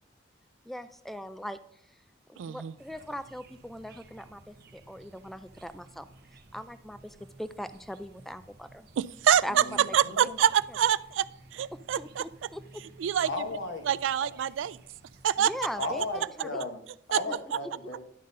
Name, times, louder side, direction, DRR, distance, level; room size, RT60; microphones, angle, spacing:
voice 1, 0.7-1.6 2.3-6.1 6.5-8.9 9.4-9.6 9.8-10.0 11.7-12.6 15.4-16.6, equal, ahead, 12 dB, 0.3 m, -40 dB
voice 2, 2.4-2.7 9.0-11.2 11.5-12.3 13.0-13.3 13.9-14.8 15.2-15.5 17.1-17.2, right 9 dB, 80° right, 18 dB, 0.3 m, -25 dB
sound 1, 2.8-16.3, right 2 dB, 60° right, 0.8 m, -55 dB
voice 3, 9.5-10.4 13.2-13.9 15.8-16.8 17.1-18.0, left 3 dB, 85° left, 5 dB, 1.2 m, -35 dB
11.0 x 3.9 x 5.2 m, 0.68 s
head